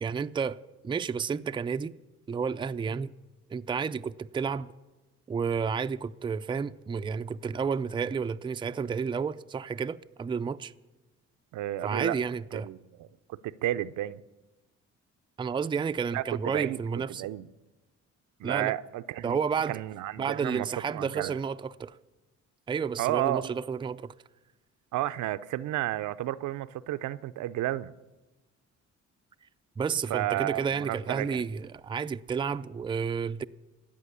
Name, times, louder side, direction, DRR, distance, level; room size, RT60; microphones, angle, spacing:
voice 1, 0.0-1.9 2.3-3.1 3.5-4.7 5.3-10.7 11.8-12.7 15.4-17.3 18.4-18.7 19.2-19.8 20.2-22.0 22.7-24.1 29.8-33.4, right 6 dB, 15° right, 0.4 m, -31 dB
voice 2, 11.5-12.2 12.5-14.2 16.1-17.5 18.4-19.4 19.7-20.7 20.9-21.4 23.0-23.5 24.9-27.9 30.1-31.4, right 14 dB, 80° right, 0.6 m, -32 dB
14.0 x 8.8 x 9.8 m
cardioid pair, 90°, 30 cm